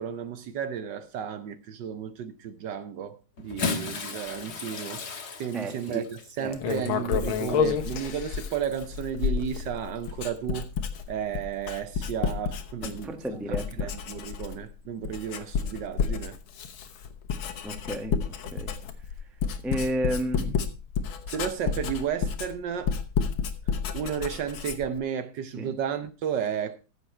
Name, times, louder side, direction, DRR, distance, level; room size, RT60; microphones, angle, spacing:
voice 1, 0.0-5.1 5.3-10.7 11.1-13.1 13.5-16.4 21.3-23.0 23.9-26.8, right 8 dB, 65° right, 1.3 m, -33 dB
Bathtub (filling or washing) / Splash splatter, 3.4-9.1 10.0-10.1 11.6-11.7, left 4 dB, 50° left, 1.9 m, -37 dB
voice 2, 5.5-6.0 6.4-6.6 12.8-13.9 17.6-18.1 18.5-18.8 19.6-20.7 25.5-25.7, right 1 dB, ahead, 0.6 m, -32 dB
Writing, 6.5-13.2 13.5-14.7 15.0-25.0, left 6 dB, 75° left, 1.9 m, -30 dB
14.5 x 7.1 x 4.2 m
omnidirectional pair, 2.3 m